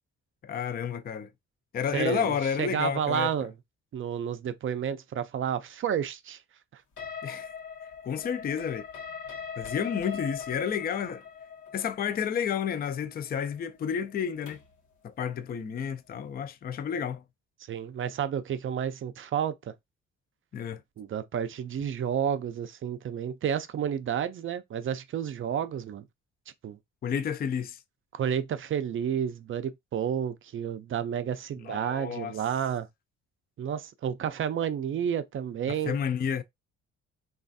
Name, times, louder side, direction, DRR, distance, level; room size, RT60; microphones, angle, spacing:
voice 1, 0.4-1.3 1.7-3.3 7.2-7.5 8.0-8.8 9.6-11.2 11.7-14.6 15.0-17.2 20.5-20.8 27.0-27.8 31.6-32.3 35.7-36.4, left 7 dB, 30° left, 0.4 m, -31 dB
voice 2, 1.9-3.5 3.9-6.4 6.7-6.8 17.7-19.7 21.0-26.0 26.6-26.8 28.1-32.9 33.6-36.0, right 8 dB, 45° right, 0.4 m, -31 dB
sound 1, 7.0-14.8, left 6 dB, 75° left, 1.0 m, -41 dB
3.2 x 2.4 x 2.5 m
cardioid pair, 90°, 30 cm